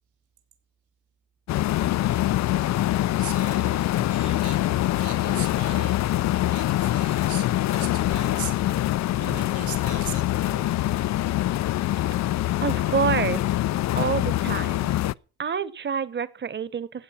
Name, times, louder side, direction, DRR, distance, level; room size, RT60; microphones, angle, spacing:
sound 1, 1.5-15.1, left 14 dB, 65° left, 0.5 m, -24 dB
voice 1, 3.2-10.8, right 9 dB, 75° right, 6 dB, 4.2 m, -40 dB
voice 2, 12.6-13.5 14.0-14.9 15.4-17.0, right 6 dB, 35° right, 16 dB, 1.3 m, -27 dB
15.5 x 8.8 x 5.9 m, 0.39 s
cardioid pair, 90°, 30 cm